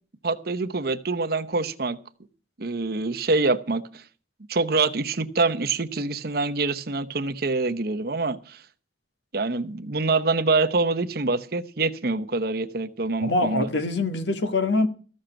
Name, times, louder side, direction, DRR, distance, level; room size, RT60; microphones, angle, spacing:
voice 1, 0.2-2.0 2.6-4.0 4.5-8.6 9.3-13.7, right 3 dB, 55° right, 0.9 m, -25 dB
voice 2, 13.2-14.9, left 2 dB, 80° left, 1.4 m, -24 dB
14.5 x 6.4 x 8.9 m
head